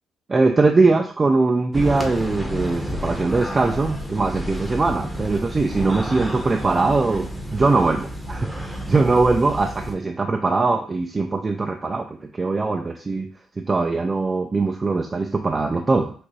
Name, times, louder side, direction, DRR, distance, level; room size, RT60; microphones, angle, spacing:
voice 1, 0.3-7.3 7.5-13.3 13.6-16.1, right 3 dB, 30° right, 3 dB, 0.5 m, -21 dB
sound 1, 1.7-9.9, equal, ahead, 0.9 m, -30 dB
6.1 x 2.6 x 3.1 m, 0.42 s
cardioid pair, 90°, 0 cm